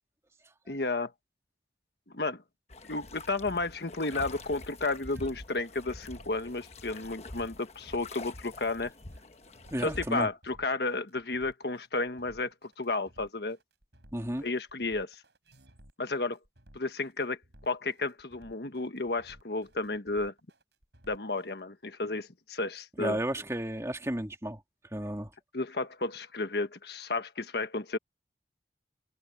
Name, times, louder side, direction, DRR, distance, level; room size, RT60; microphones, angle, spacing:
voice 1, 0.7-1.1 2.1-2.4 2.9-8.9 9.8-13.6 14.4-15.2 16.0-16.4 16.7-17.4 17.7-20.3 21.1-23.2 25.5-28.0, left 3 dB, 65° left, 1.4 m, -32 dB
sound 1, 2.7-10.2, left 2 dB, 35° left, 1.2 m, -46 dB
sound 2, 4.3-21.5, right 1 dB, 75° right, 6.9 m, -58 dB
voice 2, 9.7-10.3 14.1-14.5 23.0-24.6 24.9-25.3, right 1 dB, 15° right, 2.5 m, -33 dB
head